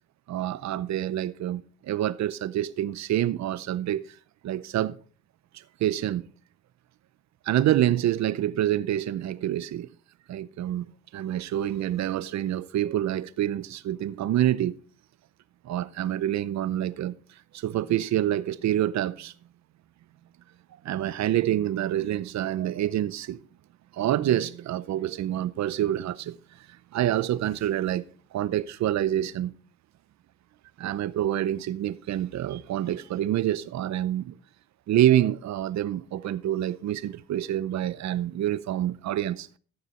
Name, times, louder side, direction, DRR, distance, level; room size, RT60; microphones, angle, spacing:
voice 1, 0.3-4.1 4.4-5.0 5.8-6.3 7.5-9.9 10.3-10.8 11.1-14.8 15.6-17.1 17.5-19.3 20.8-23.4 23.9-26.4 26.9-28.0 28.3-29.5 30.8-34.3 34.9-39.5, right 12 dB, 65° right, 0.7 m, -27 dB
14.0 x 6.7 x 4.3 m
cardioid pair, 90°, 30 cm